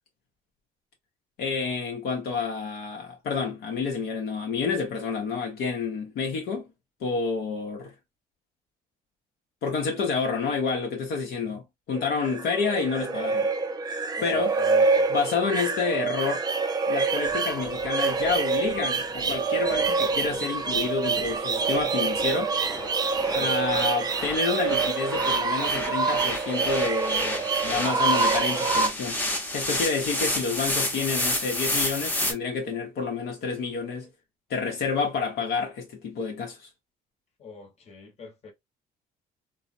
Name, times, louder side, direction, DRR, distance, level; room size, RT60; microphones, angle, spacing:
voice 1, 1.4-6.7 7.0-7.9 9.6-13.5 14.2-14.5 15.1-16.4 16.9-22.5 23.3-29.2 29.5-34.1 34.5-36.7, left 5 dB, 70° left, 0.8 m, -29 dB
sound 1, 11.9-28.9, right 4 dB, 25° right, 0.4 m, -26 dB
voice 2, 14.1-15.1 23.2-23.6 27.2-28.0 37.4-38.5, left 5 dB, 40° left, 1.1 m, -44 dB
sound 2, 17.3-32.3, left 1 dB, 10° left, 0.8 m, -32 dB
3.1 x 2.0 x 2.6 m
cardioid pair, 110°, 17 cm